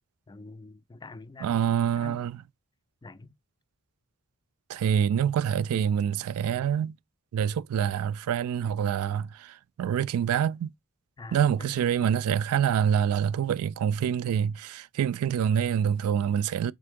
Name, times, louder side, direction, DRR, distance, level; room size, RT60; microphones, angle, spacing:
voice 1, 0.3-1.7 2.0-2.3 3.0-3.3 11.2-12.2, left 3 dB, 20° left, 0.4 m, -46 dB
voice 2, 1.4-2.4 4.7-6.9 7.3-10.7 11.3-16.7, right 8 dB, 80° right, 0.3 m, -26 dB
3.6 x 3.4 x 3.5 m
head